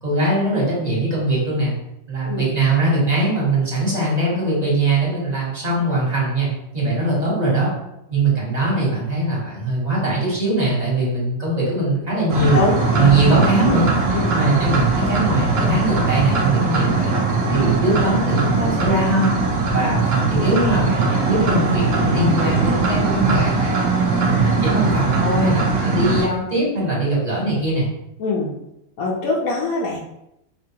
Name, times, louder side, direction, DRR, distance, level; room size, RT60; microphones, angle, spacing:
voice 1, 0.0-1.8 2.1-6.5 6.7-7.7 8.1-12.6 12.9-13.9 14.3-17.2 17.5-19.3 19.7-23.8 24.2-27.9, right 2 dB, 30° right, -6 dB, 1.4 m, -21 dB
sound 1, 12.3-26.3, right 3 dB, 55° right, 0.8 m, -20 dB
voice 2, 12.5-13.1 14.1-14.3 28.2-28.5 29.0-30.0, left 3 dB, 80° left, -3 dB, 1.2 m, -23 dB
5.3 x 2.5 x 2.8 m, 0.83 s
omnidirectional pair, 1.5 m